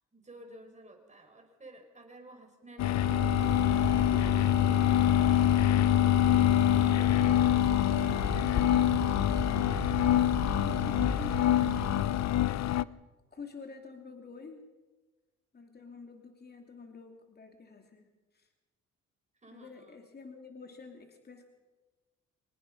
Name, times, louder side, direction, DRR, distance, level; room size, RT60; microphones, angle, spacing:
voice 1, 0.1-3.2 6.4-8.8 19.4-20.0, right 1 dB, 25° right, 4 dB, 5.0 m, -53 dB
sound 1, 2.8-12.8, left 12 dB, 60° left, 0.6 m, -25 dB
sound 2, 3.0-12.0, right 6 dB, 75° right, 4.5 m, -38 dB
sound 3, 3.4-12.8, equal, 10° left, 2.4 m, -52 dB
voice 2, 10.3-13.0 13.3-14.6 15.5-18.1 18.3-18.5 19.5-21.5, left 4 dB, 30° left, 4 dB, 2.8 m, -48 dB
25.5 x 18.5 x 5.4 m, 1.2 s
cardioid pair, 90°, 30 cm